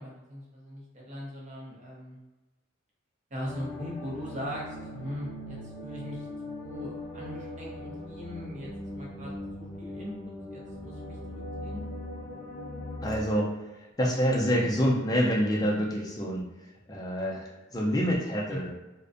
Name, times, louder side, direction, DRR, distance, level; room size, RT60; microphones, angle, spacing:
voice 1, 0.0-2.2 3.3-8.7 8.9-9.3 9.6-10.1 10.5-11.8 18.5-18.6, equal, 35° right, -4 dB, 0.6 m, -40 dB
sound 1, 3.4-13.2, left 1 dB, 55° left, 0.7 m, -40 dB
voice 2, 13.0-16.4 16.9-18.7, equal, 20° left, -3 dB, 0.4 m, -27 dB
2.5 x 2.1 x 2.5 m, 1.1 s
head